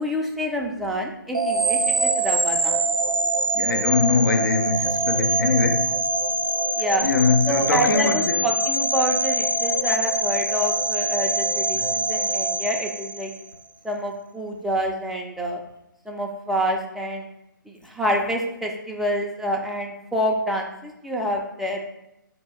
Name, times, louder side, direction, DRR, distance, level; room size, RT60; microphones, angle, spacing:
voice 1, 0.0-2.8 6.8-7.0 7.5-13.3 13.8-15.6 16.1-17.3 17.7-21.8, equal, ahead, 0.4 m, -27 dB
sound 1, 1.3-13.5, right 2 dB, 90° right, 0.5 m, -24 dB
voice 2, 3.5-6.0 7.0-8.5 11.7-11.9, left 4 dB, 65° left, 0.6 m, -22 dB
4.5 x 2.7 x 4.3 m
figure-of-eight pair, 135°, 11 cm